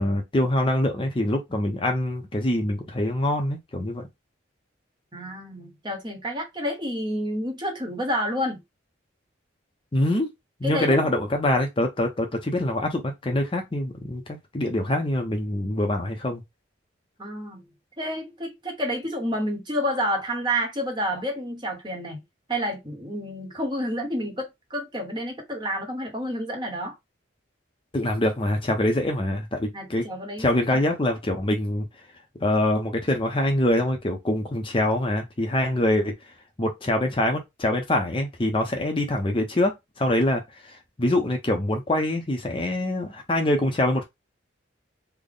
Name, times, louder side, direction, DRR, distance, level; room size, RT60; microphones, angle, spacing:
voice 1, 0.0-4.1 9.9-10.3 10.6-16.4 27.9-30.0 30.4-31.9 32.4-36.3 36.6-44.0, left 1 dB, 25° left, 0.6 m, -24 dB
voice 2, 5.1-8.6 10.6-11.0 17.2-17.6 18.0-22.2 22.5-27.0 29.7-30.8, equal, 25° right, 1.0 m, -29 dB
3.4 x 2.1 x 3.8 m
head